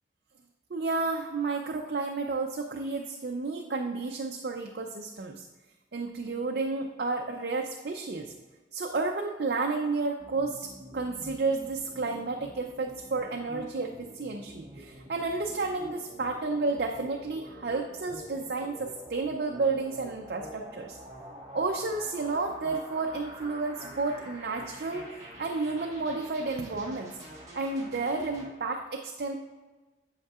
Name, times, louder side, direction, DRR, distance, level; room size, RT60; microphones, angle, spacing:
voice 1, 0.7-5.4 5.9-8.3 8.7-21.0 21.5-25.0 25.4-27.2 27.5-29.4, right 3 dB, 60° right, 2 dB, 0.5 m, -31 dB
sound 1, 10.2-28.5, equal, 20° right, 1.3 m, -47 dB
8.2 x 7.2 x 2.4 m, 1.2 s
head